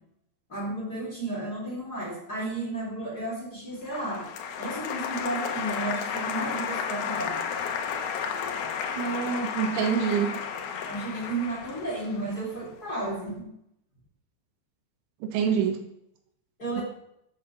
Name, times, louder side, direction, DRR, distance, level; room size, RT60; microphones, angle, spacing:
voice 1, 0.5-4.3 4.6-7.4 10.1-10.2 10.9-13.5 15.3-15.4 16.6-16.8, right 2 dB, 20° left, -3 dB, 3.5 m, -33 dB
Applause, 3.9-12.9, left 7 dB, 70° left, 2.9 m, -33 dB
voice 2, 9.0-10.3 15.2-15.8, right 7 dB, 75° right, 5 dB, 3.5 m, -26 dB
12.0 x 8.4 x 6.1 m, 0.78 s
omnidirectional pair, 5.7 m